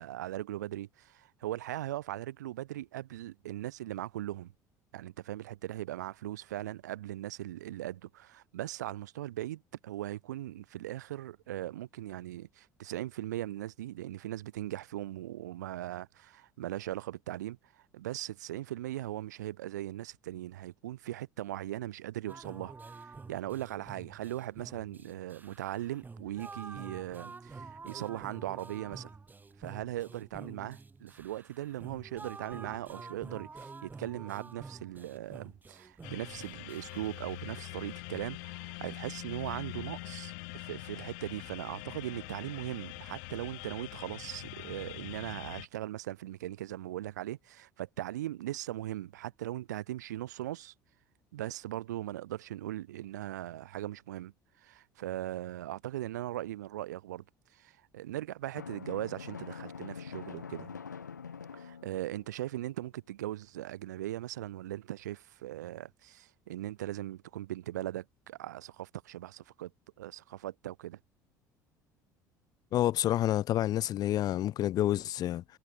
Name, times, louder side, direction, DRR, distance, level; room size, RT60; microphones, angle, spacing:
voice 1, 0.0-4.5 4.9-29.1 29.6-50.7 51.3-57.2 57.5-60.8 61.5-69.7 70.0-71.0, right 14 dB, 75° right, 0.6 m, -39 dB
sound 1, 22.3-38.0, right 4 dB, 20° right, 0.9 m, -49 dB
sound 2, 36.0-45.7, left 34 dB, 65° left, 2.5 m, -44 dB
Drum, 58.5-62.3, left 6 dB, 85° left, 1.1 m, -44 dB
voice 2, 72.7-75.4, left 13 dB, 45° left, 0.4 m, -28 dB
figure-of-eight pair, 60°, 9 cm